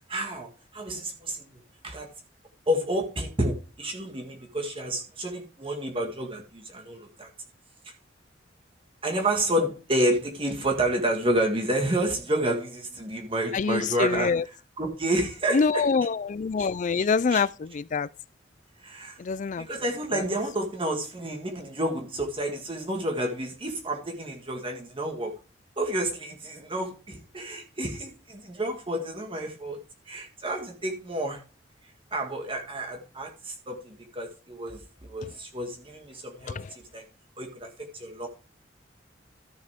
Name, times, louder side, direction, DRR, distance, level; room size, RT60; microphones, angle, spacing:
voice 1, 0.1-1.5 1.8-2.1 2.7-7.3 9.0-15.9 16.6-17.4 18.8-19.2 19.6-25.3 25.8-29.8 30.1-31.4 32.1-36.6 36.9-37.0 37.4-38.3, right 1 dB, 30° right, 1.7 m, -30 dB
voice 2, 13.5-14.4 15.5-17.5 17.7-18.1 19.2-19.6, left 5 dB, 45° left, 0.4 m, -25 dB
13.5 x 6.6 x 3.6 m
head